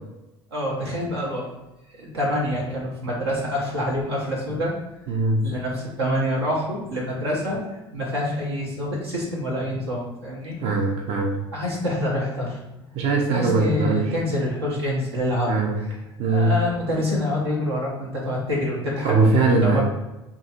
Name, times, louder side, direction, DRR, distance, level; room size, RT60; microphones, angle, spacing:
voice 1, 0.5-1.5 1.9-4.7 5.4-10.9 11.5-12.6 13.3-19.2 19.4-19.8, left 1 dB, 85° right, -3 dB, 1.0 m, -26 dB
voice 2, 5.1-5.4 10.6-11.4 13.0-14.0 15.5-15.8 16.2-16.5 19.0-19.8, right 3 dB, 50° right, -1 dB, 0.7 m, -20 dB
3.9 x 3.0 x 2.4 m, 0.98 s
hypercardioid pair, 70°, 13 cm